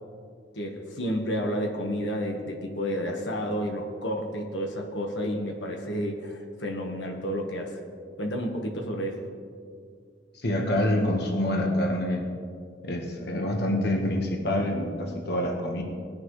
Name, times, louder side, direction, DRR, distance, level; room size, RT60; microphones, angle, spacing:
voice 1, 0.5-7.8 8.2-9.3, equal, 85° left, 1 dB, 1.5 m, -31 dB
voice 2, 10.4-12.2 12.8-15.8, left 1 dB, 65° left, 1 dB, 1.4 m, -26 dB
20.0 x 10.5 x 3.2 m, 2.2 s
head